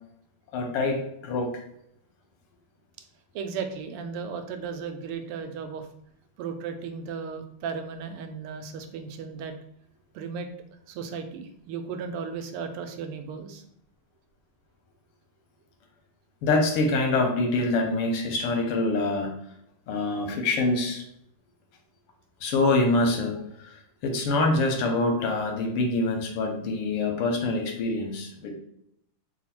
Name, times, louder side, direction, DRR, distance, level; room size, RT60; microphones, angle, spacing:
voice 1, 0.5-1.6 16.4-19.3 19.9-21.0 22.4-28.5, left 2 dB, 90° left, 3 dB, 1.7 m, -25 dB
voice 2, 3.3-5.9 6.4-9.5 10.1-10.5 10.9-13.6, right 6 dB, 85° right, 6 dB, 1.5 m, -35 dB
4.1 x 2.3 x 4.2 m, 0.74 s
omnidirectional pair, 2.4 m